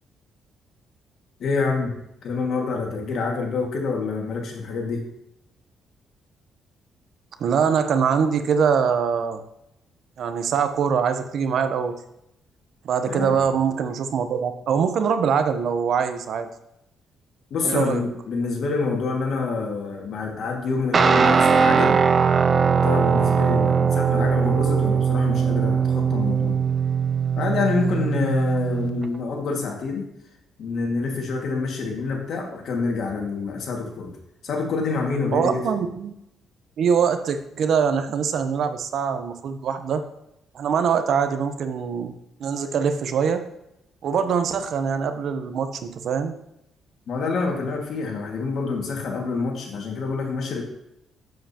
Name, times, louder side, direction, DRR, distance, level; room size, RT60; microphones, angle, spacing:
voice 1, 1.4-1.9 2.2-5.0 13.1-13.4 17.5-22.0 22.8-26.6 27.3-30.0 30.6-34.1 34.4-35.6 47.1-50.6, left 4 dB, 65° left, 1 dB, 1.9 m, -26 dB
voice 2, 7.4-9.4 10.2-12.0 12.8-16.5 17.6-18.1 35.3-36.1 36.8-40.0 40.5-42.1 42.4-43.4 44.0-46.3, right 6 dB, 65° right, 9 dB, 0.8 m, -23 dB
Guitar, 20.9-29.1, right 6 dB, 40° right, 0.4 m, -20 dB
7.8 x 7.5 x 2.9 m, 0.82 s
cardioid pair, 90°, 0 cm